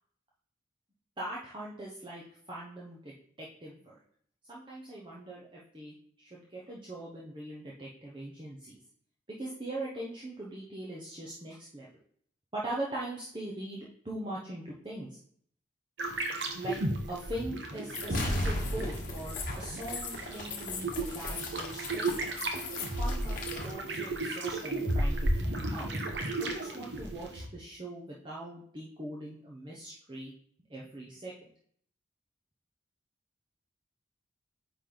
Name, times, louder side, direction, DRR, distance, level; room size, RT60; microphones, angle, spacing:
voice 1, 1.2-4.0 4.5-8.8 9.3-11.9 12.5-15.2 16.6-16.8 17.1-22.1 22.8-23.4 23.6-25.8 26.4-30.3 30.7-31.5, right 1 dB, 25° right, -6 dB, 1.0 m, -41 dB
sound 1, 16.0-27.5, right 2 dB, 60° right, 1.1 m, -34 dB
sound 2, 17.9-23.7, left 2 dB, 45° left, 1.3 m, -36 dB
9.1 x 3.4 x 3.9 m, 0.63 s
head